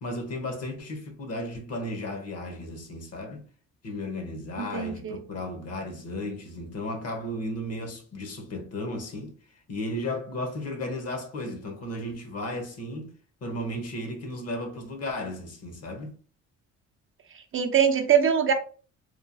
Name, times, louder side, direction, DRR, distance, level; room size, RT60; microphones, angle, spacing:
voice 1, 0.0-3.4 3.8-9.3 9.7-13.1 13.4-16.1, left 1 dB, 55° left, 0.9 m, -34 dB
voice 2, 4.7-5.2 17.5-18.5, right 8 dB, 45° right, 0.5 m, -22 dB
3.1 x 2.2 x 2.6 m
cardioid pair, 90°, 30 cm